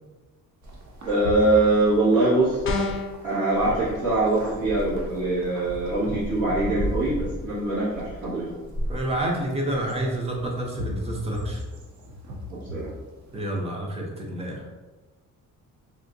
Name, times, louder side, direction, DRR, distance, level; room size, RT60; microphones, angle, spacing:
sound 1, 0.6-13.6, equal, 55° right, 0.6 m, -36 dB
voice 1, 1.0-2.6 3.2-8.5 12.5-12.9, right 2 dB, 90° right, -13 dB, 1.4 m, -23 dB
sound 2, 2.6-3.2, left 2 dB, 40° left, 0.4 m, -26 dB
voice 2, 8.9-11.6 13.3-14.8, right 1 dB, 20° right, -1 dB, 0.5 m, -29 dB
3.7 x 2.5 x 2.6 m, 1.2 s
cardioid pair, 170°, 34 cm